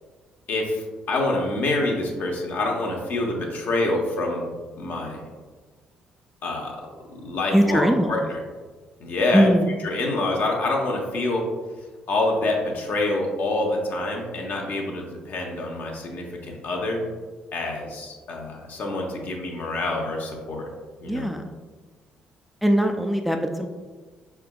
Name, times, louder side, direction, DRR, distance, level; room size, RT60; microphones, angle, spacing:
voice 1, 0.5-4.5 4.8-5.2 6.4-6.8 7.1-8.4 9.0-9.5 9.8-11.5 12.1-17.0 17.5-20.7 21.0-21.3, left 2 dB, 60° left, 0 dB, 0.9 m, -26 dB
voice 2, 7.5-8.2 9.3-9.7 21.1-21.4 22.6-23.7, equal, 5° right, 3 dB, 0.4 m, -20 dB
4.8 x 3.4 x 2.3 m, 1.4 s
hypercardioid pair, 55°, 4 cm